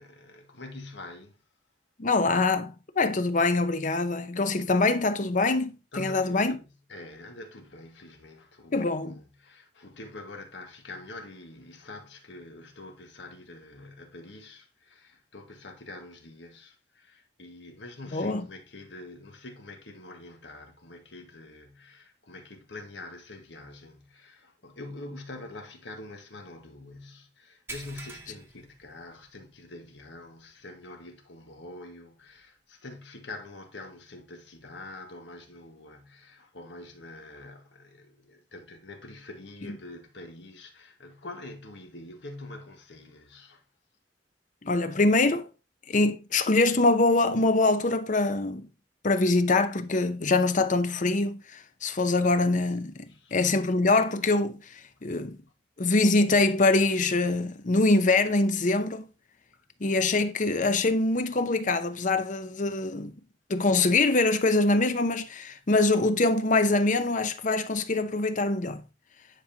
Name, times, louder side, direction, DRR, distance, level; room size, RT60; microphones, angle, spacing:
voice 1, 0.0-1.4 5.9-43.6 53.1-53.3, left 2 dB, 80° left, 1.6 m, -45 dB
voice 2, 2.0-6.6 8.7-9.2 18.1-18.5 39.7-39.8 44.6-45.5 45.9-48.7 49.0-55.4 55.8-59.1 59.8-63.1 63.5-68.8, left 3 dB, 45° left, 0.8 m, -24 dB
sound 1, 27.7-29.6 29.9-30.1 30.6-30.7 32.4-32.5, right 2 dB, 15° right, 1.0 m, -45 dB
9.9 x 5.2 x 2.8 m
head